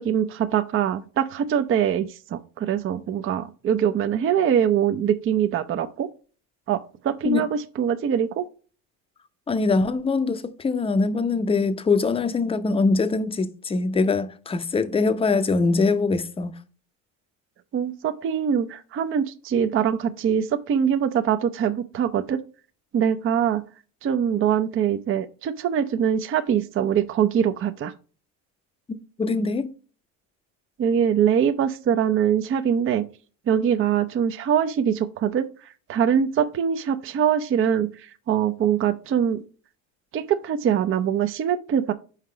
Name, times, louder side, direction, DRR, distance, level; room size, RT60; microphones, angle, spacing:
voice 1, 0.0-6.1 6.7-8.5 17.7-22.4 22.9-23.6 24.0-27.9 30.8-33.0 33.5-35.5 35.9-39.4 40.1-41.9, right 8 dB, 30° right, 0.6 m, -23 dB
voice 2, 9.5-16.5 29.2-29.7, left 4 dB, 15° left, 0.7 m, -23 dB
5.8 x 4.6 x 4.9 m
supercardioid pair, 100°, 40 cm